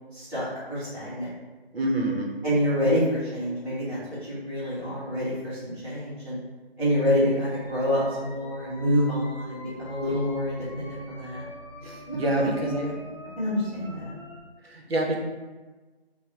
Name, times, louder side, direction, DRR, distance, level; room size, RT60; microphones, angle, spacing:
voice 1, 0.1-1.3 2.4-6.4 6.8-11.4 12.1-12.7 13.4-14.1, equal, 10° left, -22 dB, 0.8 m, -27 dB
voice 2, 1.7-2.4 11.8-12.9 14.6-15.2, right 1 dB, 70° right, -1 dB, 0.9 m, -26 dB
sound 1, 7.5-14.4, equal, 30° right, 0.5 m, -44 dB
3.5 x 2.2 x 4.1 m, 1.3 s
figure-of-eight pair, 175°, 31 cm